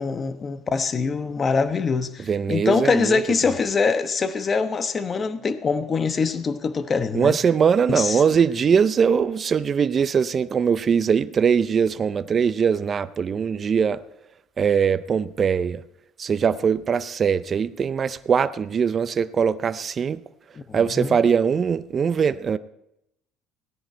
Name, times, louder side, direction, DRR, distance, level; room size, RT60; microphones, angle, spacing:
voice 1, 0.0-7.3 7.9-8.2 20.7-21.2, left 5 dB, 30° left, 1.1 m, -24 dB
voice 2, 2.3-3.2 7.1-14.0 14.6-15.8 16.2-20.2 20.7-22.6, right 6 dB, 35° right, 0.5 m, -21 dB
16.5 x 10.5 x 4.5 m
supercardioid pair, 100°, 0 cm